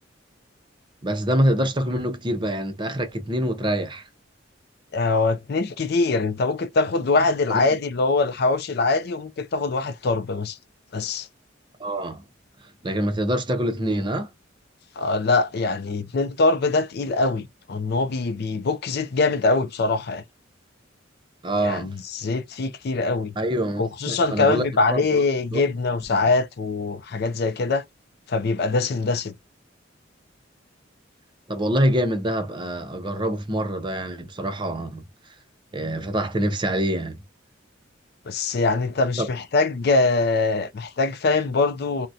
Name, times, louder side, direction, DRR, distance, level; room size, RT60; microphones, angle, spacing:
voice 1, 1.0-4.0 7.5-7.8 11.8-12.2 12.8-14.3 21.4-21.9 23.4-24.6 24.9-25.2 25.5-25.6 26.1-26.2 31.5-35.0 35.7-37.2 39.2-39.3, right 1 dB, 25° right, 0.6 m, -25 dB
voice 2, 4.9-10.6 10.9-11.3 15.0-20.2 21.6-23.4 23.8-27.8 28.3-29.3 38.3-42.1, left 3 dB, 55° left, 0.4 m, -23 dB
3.7 x 2.1 x 2.6 m
head